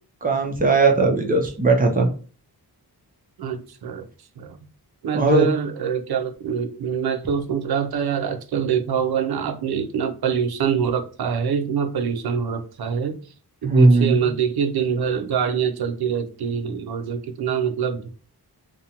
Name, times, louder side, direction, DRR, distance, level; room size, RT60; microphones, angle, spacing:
voice 1, 0.2-2.1 5.1-5.4 13.6-14.3, right 3 dB, 20° right, 2 dB, 0.6 m, -18 dB
voice 2, 3.4-4.1 4.4-4.6 5.0-13.1 13.6-18.1, right 7 dB, 75° right, 6 dB, 0.5 m, -24 dB
2.5 x 2.1 x 2.8 m, 0.39 s
wide cardioid pair, 130°, 38 cm